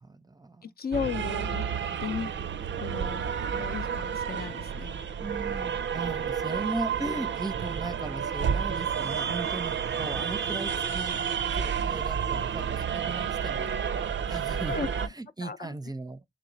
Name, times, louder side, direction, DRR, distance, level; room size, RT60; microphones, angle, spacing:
voice 1, 0.0-0.6 5.2-11.2 11.5-13.7 14.0-16.2, right 2 dB, 20° right, 0.5 m, -37 dB
voice 2, 0.6-1.6 2.0-2.3 2.8-4.9 14.7-15.1 15.4-15.7, left 6 dB, 55° left, 0.5 m, -35 dB
sound 1, 0.9-15.1, right 7 dB, 80° right, 0.4 m, -30 dB
3.1 x 3.1 x 3.8 m
cardioid pair, 40°, 19 cm